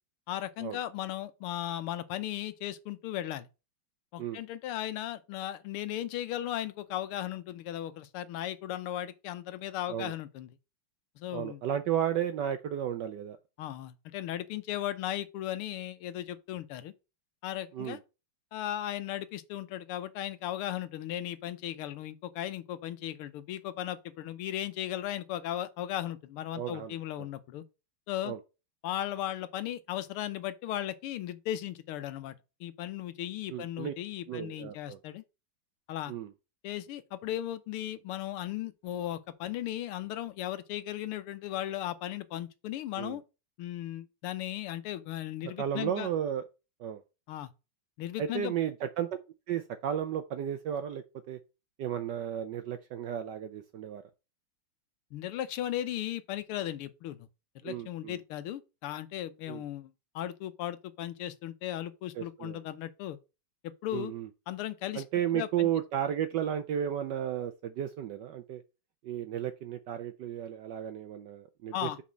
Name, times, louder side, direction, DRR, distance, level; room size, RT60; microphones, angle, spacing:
voice 1, 0.3-3.5 4.1-10.5 11.2-11.6 13.6-16.9 17.4-18.0 18.5-27.6 28.1-28.3 28.8-32.3 32.6-35.2 35.9-36.1 36.6-43.2 43.6-46.1 47.3-47.5 48.0-48.5 55.1-57.2 57.5-63.2 63.6-64.1 64.5-65.0 65.3-65.7 71.7-72.0, left 12 dB, 80° left, 1.6 m, -36 dB
voice 2, 11.3-13.4 17.7-18.0 26.6-26.9 28.2-28.4 33.5-33.9 34.3-35.0 36.1-36.3 43.0-43.2 45.6-46.4 46.8-47.0 48.2-49.1 49.5-51.4 51.8-54.0 57.6-58.2 59.5-59.6 62.2-62.6 63.9-64.3 64.9-68.6 69.0-71.9, right 10 dB, 75° right, 1.0 m, -33 dB
5.7 x 4.2 x 6.1 m
omnidirectional pair, 2.4 m